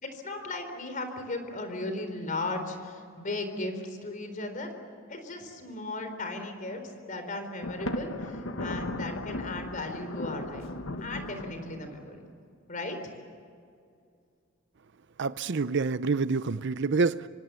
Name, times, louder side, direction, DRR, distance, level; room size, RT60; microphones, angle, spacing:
voice 1, 0.0-4.7 5.1-6.8 7.1-10.7 11.0-12.3 12.7-13.1, left 2 dB, 40° left, 7 dB, 4.1 m, -36 dB
Thunder, 7.6-12.2, left 1 dB, 75° left, 1.6 m, -36 dB
voice 2, 15.2-17.3, right 4 dB, 60° right, 14 dB, 0.6 m, -27 dB
25.5 x 25.5 x 7.0 m, 2.4 s
head